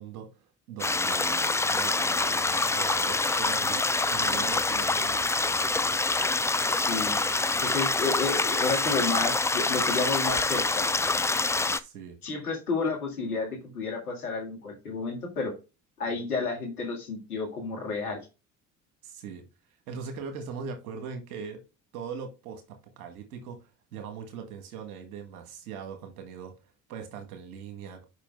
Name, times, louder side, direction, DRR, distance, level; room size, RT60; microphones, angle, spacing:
voice 1, 0.0-5.3 11.7-12.2 19.0-19.4 19.9-21.6 21.9-28.0, right 6 dB, 80° right, 1.8 m, -40 dB
sound 1, 0.8-11.8, left 3 dB, 5° left, 0.3 m, -26 dB
voice 2, 6.7-7.2 7.6-10.8 12.2-15.5 16.0-18.2, left 4 dB, 90° left, 2.2 m, -31 dB
6.7 x 5.6 x 3.3 m
hypercardioid pair, 55°, 43 cm